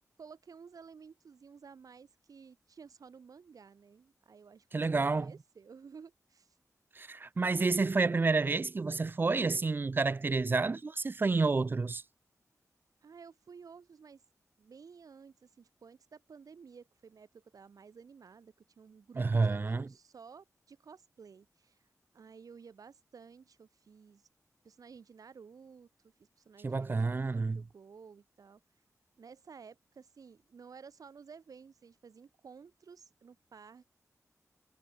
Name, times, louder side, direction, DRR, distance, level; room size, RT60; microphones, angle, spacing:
voice 1, 0.2-6.6 13.0-14.2 14.6-21.9 22.1-24.3 24.6-28.6 29.2-33.8, right 6 dB, 80° right, 5.6 m, -54 dB
voice 2, 4.7-5.3 7.0-12.0 19.2-19.8 26.6-27.6, right 3 dB, 35° right, 0.5 m, -29 dB
wide cardioid pair, 100°, 6 cm